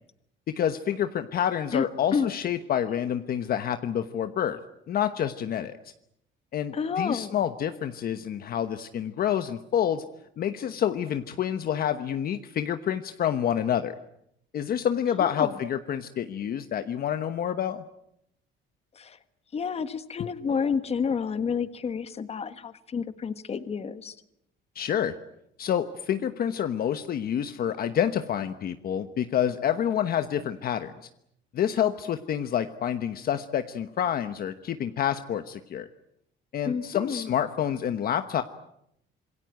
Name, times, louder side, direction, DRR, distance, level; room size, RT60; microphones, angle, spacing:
voice 1, 0.6-4.6 4.9-5.7 6.5-10.0 10.4-13.9 14.5-17.8 24.7-25.1 25.6-30.9 31.5-35.9 36.5-38.4, left 9 dB, 50° left, 9 dB, 1.1 m, -28 dB
voice 2, 1.7-2.3 6.7-7.3 15.2-15.5 18.9-19.2 19.5-24.1 36.6-37.3, left 6 dB, 30° left, 11 dB, 1.5 m, -30 dB
27.0 x 22.5 x 9.1 m, 0.78 s
cardioid pair, 160°, 20 cm